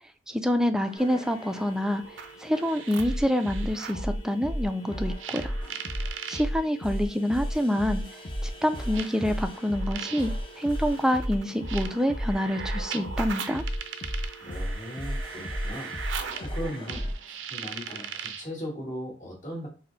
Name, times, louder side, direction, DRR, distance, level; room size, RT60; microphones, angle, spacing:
voice 1, 0.3-2.0 2.4-5.5 6.3-8.0 8.4-13.6, equal, 5° right, 8 dB, 0.4 m, -27 dB
sound 1, 0.8-1.8 2.5-17.2 17.9-18.2, equal, 30° left, 0.7 m, -34 dB
sound 2, 1.0-16.1, right 1 dB, 65° left, 1.4 m, -50 dB
sound 3, 2.0-4.1 5.2-6.5 7.6-7.7 8.9-18.5, right 7 dB, 80° right, 0.5 m, -39 dB
voice 2, 14.4-16.0 16.4-19.7, equal, 45° left, -3 dB, 2.0 m, -38 dB
4.2 x 2.0 x 3.9 m, 0.36 s
head